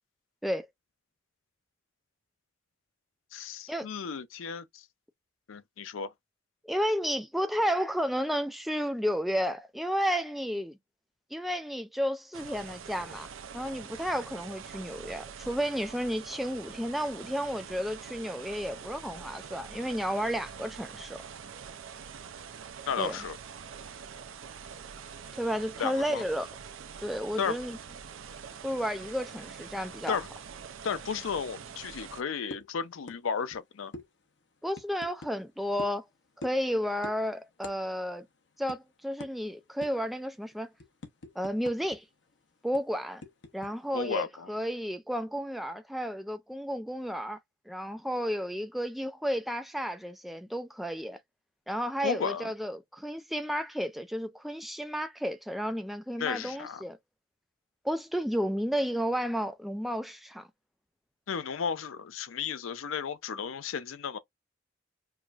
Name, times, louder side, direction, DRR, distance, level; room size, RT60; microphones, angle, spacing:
voice 1, 3.3-4.8 5.5-6.1 22.9-23.4 25.8-26.2 27.4-27.6 30.1-30.3 30.8-33.9 43.9-44.5 52.0-52.5 56.2-56.8 61.3-64.2, left 6 dB, 90° left, 0.5 m, -34 dB
voice 2, 6.6-10.8 11.3-13.3 13.5-21.2 23.0-23.2 25.3-26.5 27.0-27.8 28.6-30.2 34.6-36.0 36.4-38.3 38.6-40.7 41.4-42.0 42.6-43.2 43.5-47.4 47.7-51.2 51.7-57.0 57.8-60.5, equal, ahead, 0.3 m, -32 dB
sound 1, 12.3-32.2, right 7 dB, 85° right, 0.5 m, -45 dB
sound 2, 32.5-32.7 33.1-33.2 33.5-33.6 33.9-34.1 34.7-35.3 35.8-36.0 36.4-36.7 37.0-37.2 37.6-37.8 38.1-38.2 38.7-38.8 39.2-39.3 39.8-40.1 40.5-42.0 42.2-42.3 42.7-43.7, left 2 dB, 65° left, 0.8 m, -44 dB
4.7 x 2.5 x 2.3 m
head